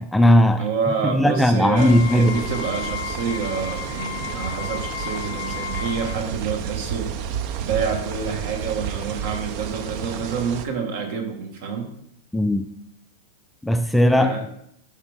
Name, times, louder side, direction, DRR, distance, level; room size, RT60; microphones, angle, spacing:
voice 1, 0.0-0.6 1.1-2.5 12.3-12.7 13.6-14.4, equal, 5° left, 0.4 m, -17 dB
voice 2, 0.6-7.2 7.6-11.9 14.1-14.4, right 5 dB, 65° right, 1.8 m, -28 dB
Wind instrument woodwind instrument, 1.7-6.2, left 11 dB, 70° left, 0.5 m, -34 dB
sound 1, 1.8-10.7, right 8 dB, 50° right, 0.6 m, -31 dB
11.0 x 5.1 x 3.6 m
supercardioid pair, 140°, 0 cm